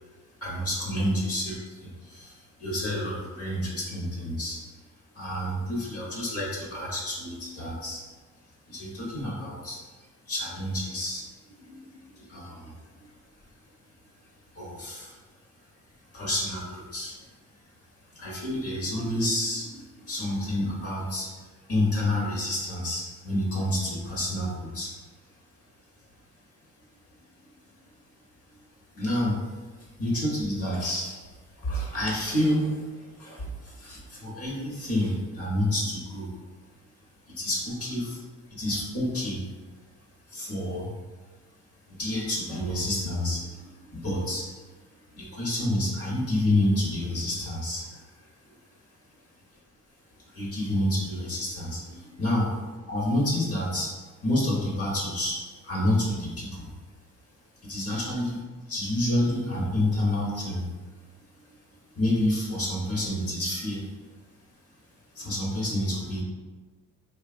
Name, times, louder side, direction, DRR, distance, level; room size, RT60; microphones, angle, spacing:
voice 1, 0.4-4.6 5.1-8.0 8.7-9.8 10.3-11.2 11.6-12.7 14.5-15.2 16.1-17.1 18.1-21.3 21.7-24.9 28.9-29.4 30.0-31.2 31.6-36.3 37.4-38.2 38.5-39.4 40.3-40.9 41.9-44.5 45.1-47.9 50.3-52.5 52.9-53.9 54.2-55.4 55.6-56.7 57.6-58.4 58.7-60.7 62.0-63.8 65.1-66.2, left 1 dB, 50° left, -4 dB, 1.0 m, -29 dB
3.0 x 2.4 x 2.3 m, 1.3 s
cardioid pair, 90°, 30 cm